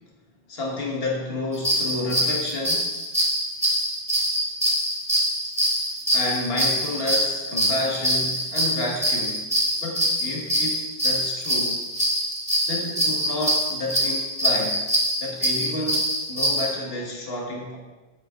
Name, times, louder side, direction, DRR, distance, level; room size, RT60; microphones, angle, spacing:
voice 1, 0.5-2.9 6.1-9.5 9.8-11.8 12.7-14.8 15.2-17.8, left 2 dB, 65° left, -2 dB, 1.8 m, -30 dB
sound 1, 1.5-16.7, equal, 5° right, 1.9 m, -24 dB
9.7 x 8.8 x 3.7 m, 1.2 s
omnidirectional pair, 1.1 m